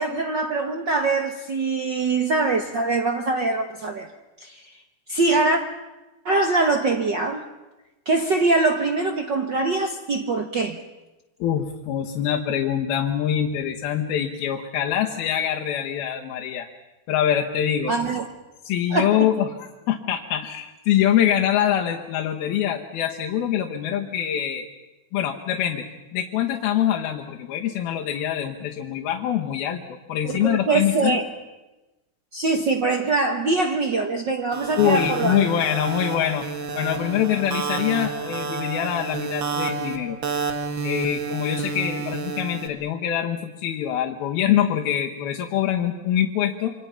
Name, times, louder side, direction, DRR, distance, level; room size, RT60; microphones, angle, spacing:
voice 1, 0.0-4.1 4.4-4.6 5.1-5.6 6.2-7.4 8.0-10.8 17.9-18.3 18.9-19.3 30.4-31.2 32.3-35.4, right 3 dB, 80° right, 4 dB, 1.0 m, -23 dB
voice 2, 11.4-16.7 17.1-17.9 18.7-24.7 25.1-25.9 26.1-31.2 34.8-36.5 36.7-40.2 40.8-46.7, left 10 dB, 90° left, 0 dB, 3.2 m, -24 dB
sound 1, 34.5-42.7, right 5 dB, 45° right, 1.9 m, -30 dB
28.0 x 25.5 x 5.8 m, 1.1 s
omnidirectional pair, 4.2 m